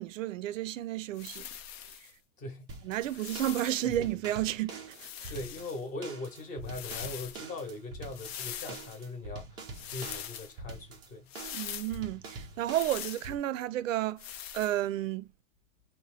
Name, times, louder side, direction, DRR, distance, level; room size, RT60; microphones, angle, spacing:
voice 1, 0.0-1.5 2.8-5.3 11.5-15.3, right 13 dB, 80° right, 0.5 m, -32 dB
sound 1, 1.2-2.1 3.0-4.0 4.9-5.8 6.6-7.4 8.1-9.0 9.7-10.5 11.3-12.0 12.7-13.3 14.2-14.8, left 10 dB, 55° left, 0.5 m, -42 dB
voice 2, 2.4-2.7 3.8-4.0 5.2-9.6 9.9-11.3, left 2 dB, 20° left, 0.9 m, -40 dB
sound 2, 2.7-13.4, right 3 dB, 10° right, 0.3 m, -45 dB
2.7 x 2.2 x 3.1 m
hypercardioid pair, 140°, 38 cm